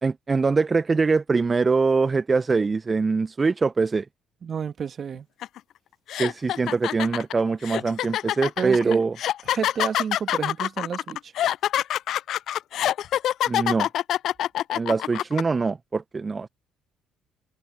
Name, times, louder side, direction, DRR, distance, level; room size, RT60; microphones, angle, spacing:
voice 1, 0.0-4.1 6.2-9.1 13.5-13.9 14.7-16.5, right 4 dB, 30° right, 1.1 m, -23 dB
voice 2, 4.4-5.3 8.6-9.0 9.5-11.3, right 7 dB, 45° right, 2.7 m, -30 dB
sound 1, 5.4-5.6 6.1-15.4, left 12 dB, 60° left, 0.4 m, -25 dB
hypercardioid pair, 50°, 0 cm